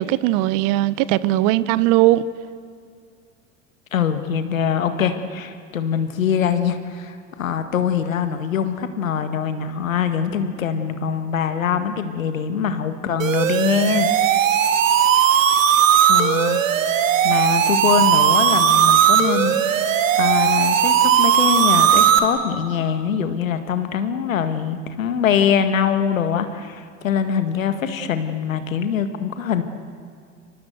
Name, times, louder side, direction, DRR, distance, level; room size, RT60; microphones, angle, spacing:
voice 1, 0.0-2.3, right 16 dB, 55° right, 1.1 m, -19 dB
voice 2, 3.9-14.1 16.1-16.6 17.2-29.6, left 7 dB, 85° left, 1.9 m, -23 dB
sound 1, 13.2-22.2, right 9 dB, 75° right, 2.0 m, -17 dB
30.0 x 24.0 x 8.0 m
hypercardioid pair, 75°, 39 cm